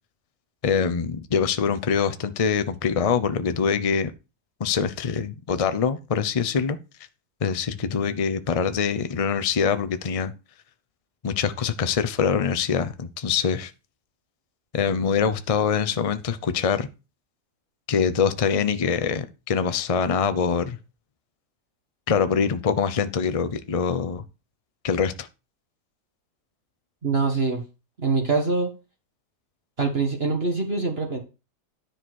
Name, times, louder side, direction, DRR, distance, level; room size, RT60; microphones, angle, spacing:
voice 1, 0.6-4.1 4.6-6.8 7.4-10.3 11.2-13.7 14.7-16.9 17.9-20.8 22.1-24.2 24.8-25.3, left 6 dB, 60° left, 0.3 m, -24 dB
voice 2, 27.0-27.6 28.0-28.7 29.8-31.2, right 4 dB, 40° right, 1.9 m, -24 dB
10.0 x 5.1 x 6.2 m
omnidirectional pair, 1.7 m